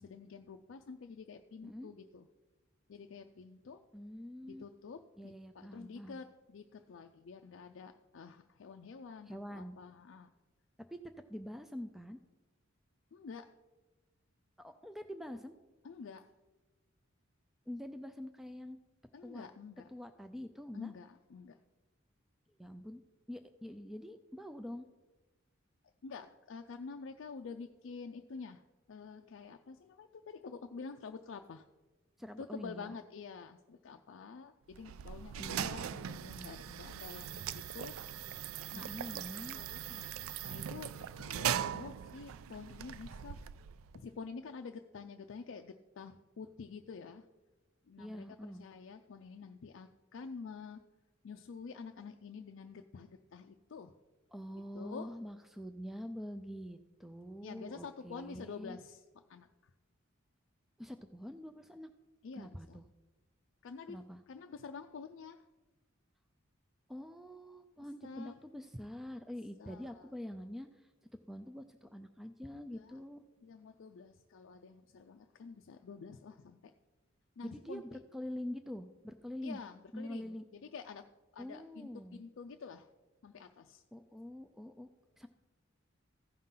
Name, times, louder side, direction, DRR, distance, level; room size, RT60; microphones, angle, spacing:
voice 1, 0.0-2.3 2.9-3.8 4.4-10.3 13.1-13.5 15.8-16.3 19.1-19.9 20.7-21.6 26.0-28.6 28.9-31.7 32.4-38.0 38.7-39.0 39.5-40.2 40.4-43.4 43.9-47.3 47.8-50.8 51.2-54.0 54.7-55.1 57.4-59.7 62.2-62.8 63.6-64.0 64.3-65.4 68.0-68.3 69.6-70.1 72.5-73.0 73.4-76.7 77.4-77.8 79.4-82.9 83.2-83.8, left 5 dB, 65° left, 6 dB, 0.4 m, -48 dB
voice 2, 3.9-4.7 5.2-6.2 9.3-9.8 10.8-11.0 11.3-12.2 14.6-15.5 17.7-18.8 19.2-19.5 19.9-20.9 22.6-23.0 23.3-24.9 32.2-32.9 35.4-35.7 38.7-39.6 48.0-48.6 54.3-58.8 60.8-61.9 62.4-62.8 63.9-64.2 66.9-70.9 71.3-73.2 77.4-79.6 79.9-80.4 81.4-82.2 83.9-84.9 85.2-85.3, equal, ahead, 7 dB, 0.3 m, -45 dB
sound 1, 34.7-44.0, right 9 dB, 85° right, 0.3 m, -40 dB
15.0 x 5.6 x 3.8 m, 1.2 s
head